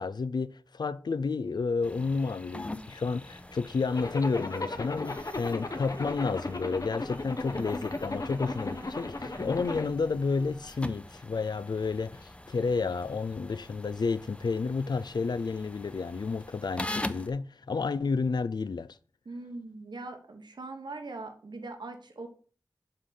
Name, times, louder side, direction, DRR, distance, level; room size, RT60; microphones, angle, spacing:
voice 1, 0.0-19.0, left 4 dB, 70° left, 0.4 m, -31 dB
sound 1, 1.8-17.3, left 1 dB, 15° left, 0.6 m, -43 dB
Zipper (clothing), 3.9-9.9, left 2 dB, 50° left, 1.0 m, -36 dB
voice 2, 19.2-22.3, right 3 dB, 85° right, 1.2 m, -41 dB
7.3 x 3.8 x 6.4 m
wide cardioid pair, 45°, 7 cm